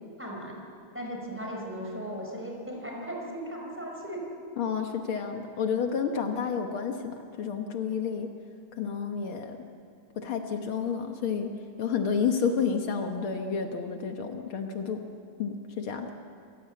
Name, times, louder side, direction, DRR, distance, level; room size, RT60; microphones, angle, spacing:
voice 1, 0.2-0.6 0.9-4.2, equal, 5° right, -1 dB, 4.6 m, -37 dB
voice 2, 4.6-8.3 8.7-9.6 10.2-11.5 11.8-15.0 15.4-16.1, left 6 dB, 75° left, 4 dB, 2.1 m, -30 dB
27.5 x 16.0 x 8.4 m, 2.4 s
omnidirectional pair, 2.4 m